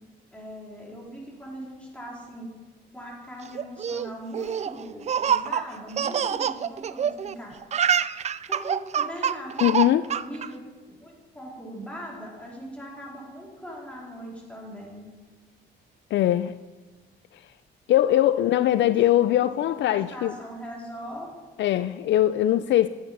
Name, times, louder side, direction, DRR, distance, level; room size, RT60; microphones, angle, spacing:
voice 1, 0.3-2.5 2.9-7.6 8.5-10.6 11.0-15.0 18.4-21.3, equal, 5° left, -4 dB, 4.2 m, -40 dB
Laughter, 3.5-7.3 7.6-10.5, right 8 dB, 35° right, 0.4 m, -26 dB
voice 2, 9.6-10.1 16.1-16.6 17.9-20.3 21.6-22.9, left 13 dB, 65° left, 14 dB, 0.4 m, -21 dB
10.5 x 9.6 x 5.5 m, 1.3 s
cardioid pair, 90°, 20 cm